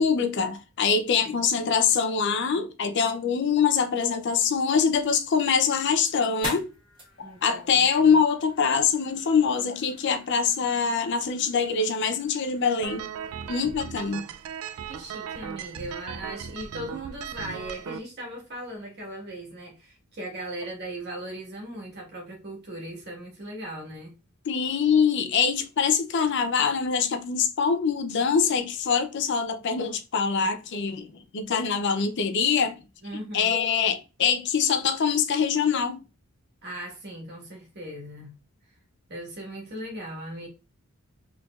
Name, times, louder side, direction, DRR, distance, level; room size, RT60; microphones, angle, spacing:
voice 1, 0.0-6.7 7.2-13.0 13.5-14.3 24.5-31.1 31.3-32.8 33.3-36.0, left 6 dB, 55° left, 0.5 m, -24 dB
sound 1, 4.7-15.7, equal, 25° right, 1.9 m, -46 dB
voice 2, 7.2-8.1 14.9-24.1 33.0-33.6 36.6-38.3 39.1-40.5, right 1 dB, 50° right, 1.5 m, -38 dB
sound 2, 12.8-18.0, right 8 dB, 90° right, 0.3 m, -37 dB
3.9 x 3.4 x 2.3 m
head